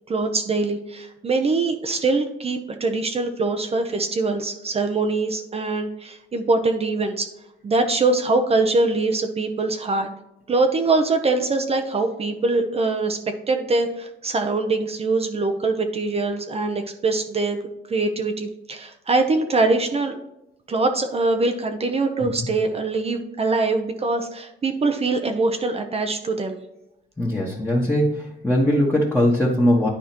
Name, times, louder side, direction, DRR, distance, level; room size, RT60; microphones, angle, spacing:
voice 1, 0.1-7.3 7.6-10.1 10.5-13.2 13.5-17.6 17.9-20.2 20.7-26.6, right 3 dB, 30° right, 6 dB, 0.7 m, -23 dB
voice 2, 27.2-29.9, left 1 dB, 5° left, -5 dB, 1.4 m, -20 dB
10.0 x 4.9 x 2.9 m, 0.88 s
cardioid pair, 135°, 20 cm